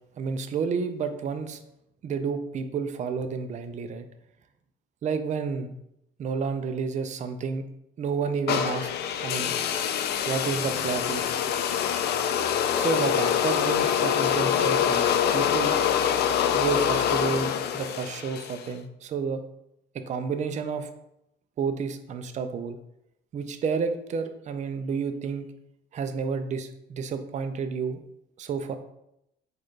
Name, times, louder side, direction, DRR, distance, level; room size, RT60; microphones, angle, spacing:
voice 1, 0.2-1.6 2.0-4.0 5.0-5.7 6.2-7.6 8.0-8.9 9.2-9.5 10.3-11.4 12.8-15.8 16.5-19.4 19.9-20.9 21.6-22.8 23.3-25.5 25.9-28.0 28.4-28.8, right 5 dB, 40° right, 9 dB, 0.4 m, -30 dB
sound 1, 8.5-18.7, left 9 dB, 65° left, 0.4 m, -25 dB
4.4 x 2.4 x 4.6 m, 0.81 s
cardioid pair, 110°, 18 cm